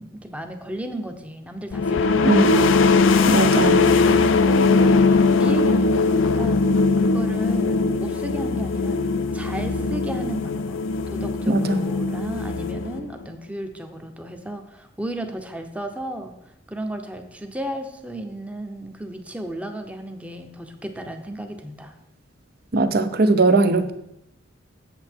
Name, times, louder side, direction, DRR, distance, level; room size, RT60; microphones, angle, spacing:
voice 1, 0.0-9.0 9.3-16.3 16.7-21.9, right 1 dB, 5° right, 6 dB, 0.8 m, -34 dB
sound 1, 1.7-13.3, left 3 dB, 80° left, 0.5 m, -20 dB
voice 2, 2.2-2.7 3.3-3.8 11.5-11.8 22.7-23.9, right 2 dB, 50° right, 10 dB, 0.7 m, -19 dB
8.0 x 7.6 x 4.5 m, 0.82 s
head